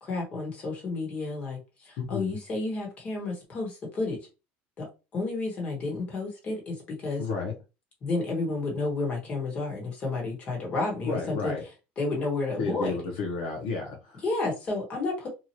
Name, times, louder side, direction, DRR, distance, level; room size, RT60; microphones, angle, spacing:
voice 1, 0.0-4.2 4.8-4.9 5.1-7.2 8.0-11.5 12.0-12.9 14.2-15.3, left 3 dB, 25° left, -1 dB, 1.3 m, -31 dB
voice 2, 2.0-2.3 7.2-7.5 11.0-11.6 12.6-14.2, left 4 dB, 65° left, 1 dB, 0.8 m, -32 dB
2.8 x 2.4 x 2.9 m, 0.29 s
cardioid pair, 155°, 5 cm